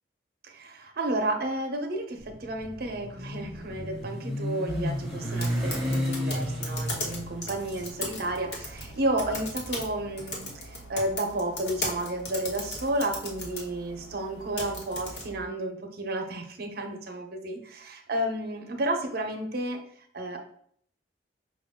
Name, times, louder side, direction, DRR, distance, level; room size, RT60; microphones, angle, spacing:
voice 1, 0.4-19.8 20.1-20.4, right 1 dB, 60° right, 5 dB, 0.7 m, -32 dB
Motorcycle, 2.2-10.4, equal, ahead, 0.9 m, -33 dB
sound 1, 4.7-15.4, left 1 dB, 70° left, 1.1 m, -38 dB
5.3 x 2.3 x 3.6 m, 0.64 s
head